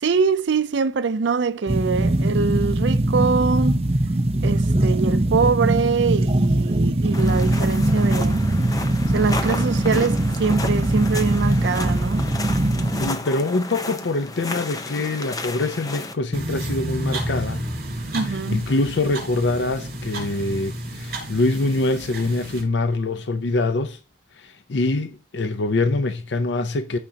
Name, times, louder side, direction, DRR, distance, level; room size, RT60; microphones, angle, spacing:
voice 1, 0.0-3.9 4.4-8.4 9.1-12.3 18.1-18.6, right 5 dB, 90° right, 0.5 m, -23 dB
sound 1, 1.7-13.1, right 1 dB, 35° right, 0.7 m, -21 dB
sound 2, 7.1-16.1, left 2 dB, 20° left, 0.8 m, -33 dB
voice 2, 13.0-17.7 18.0-24.0 24.3-27.0, left 2 dB, 85° left, 0.6 m, -24 dB
sound 3, 16.3-22.6, right 1 dB, 55° right, 4.9 m, -31 dB
15.0 x 5.1 x 2.8 m
head